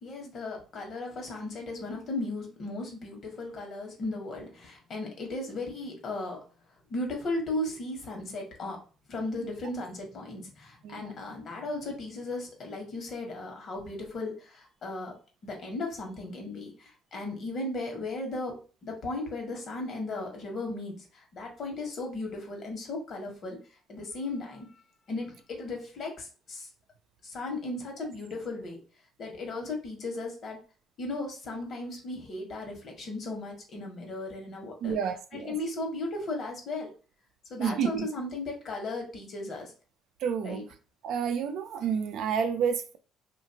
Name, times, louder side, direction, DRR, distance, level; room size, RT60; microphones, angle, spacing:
voice 1, 0.0-6.4 6.9-8.8 9.1-15.1 15.4-20.9 21.3-23.6 23.9-24.7 25.1-26.7 27.2-28.8 29.2-30.6 31.0-35.0 35.3-36.9 37.5-39.7 40.4-40.6, left 2 dB, 55° left, 1.2 m, -36 dB
voice 2, 34.8-35.6 37.6-38.1 40.2-40.6 41.0-43.0, right 7 dB, 70° right, 0.4 m, -30 dB
2.7 x 2.5 x 2.8 m
cardioid pair, 95°, 0 cm